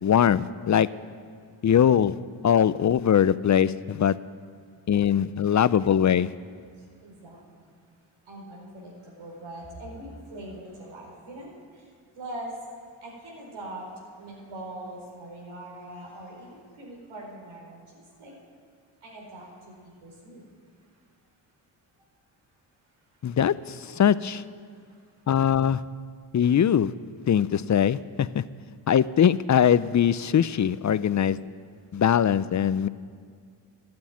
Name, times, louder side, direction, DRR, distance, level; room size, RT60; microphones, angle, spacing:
voice 1, 0.0-0.9 1.6-2.2 2.4-4.2 4.9-6.3 23.2-24.4 25.3-25.8 26.3-26.9 27.3-28.4 28.9-31.4 31.9-32.9, left 9 dB, 40° left, 17 dB, 0.5 m, -21 dB
voice 2, 7.0-7.4 8.2-11.9 12.1-12.6 13.0-13.9 14.2-18.3 19.0-20.4 24.8-25.0, right 1 dB, 75° right, -1 dB, 4.7 m, -42 dB
12.5 x 9.6 x 9.2 m, 2.1 s
supercardioid pair, 55°, 48 cm